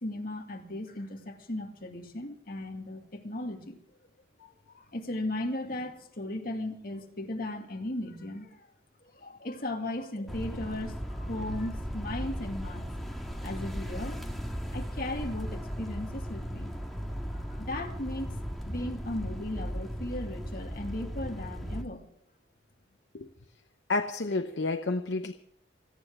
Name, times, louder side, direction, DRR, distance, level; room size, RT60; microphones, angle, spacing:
voice 1, 0.0-3.8 4.4-8.6 9.1-12.9 13.4-14.2 14.7-16.7 17.3-18.4 18.7-22.0, left 1 dB, 50° left, 2 dB, 2.2 m, -36 dB
sound 1, 10.3-21.8, equal, ahead, 1.7 m, -37 dB
voice 2, 23.9-25.3, left 3 dB, 65° left, 7 dB, 0.8 m, -30 dB
29.0 x 10.0 x 3.7 m, 0.68 s
head